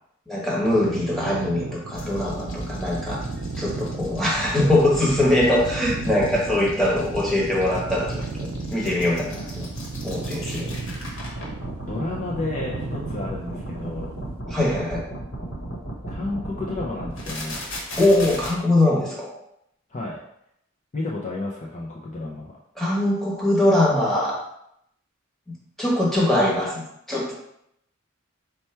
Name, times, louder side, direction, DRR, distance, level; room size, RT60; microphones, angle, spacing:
voice 1, 0.3-3.2 3.6-9.7 10.0-10.7 14.5-15.1 18.0-19.3 22.8-24.4 25.5-27.3, left 1 dB, ahead, -6 dB, 1.1 m, -22 dB
sound 1, 0.6-14.4, right 4 dB, 75° right, 0.4 m, -36 dB
sound 2, 1.9-18.5, right 1 dB, 65° left, 1.1 m, -34 dB
voice 2, 11.8-14.1 16.1-17.6 19.9-20.2 20.9-22.5, left 2 dB, 35° left, -3 dB, 0.5 m, -31 dB
4.4 x 2.2 x 4.3 m, 0.77 s
head